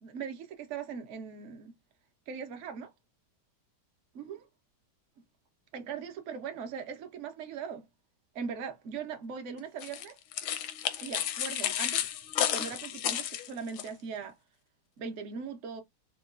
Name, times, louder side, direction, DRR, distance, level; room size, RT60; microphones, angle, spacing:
voice 1, 0.0-1.7 2.3-2.9 4.1-4.5 5.7-7.8 8.3-10.2 11.0-12.1 12.4-14.4 15.0-15.8, right 6 dB, 65° right, 0.7 m, -40 dB
sound 1, 9.8-13.9, left 11 dB, 80° left, 1.4 m, -32 dB
4.5 x 2.3 x 2.4 m
omnidirectional pair, 2.3 m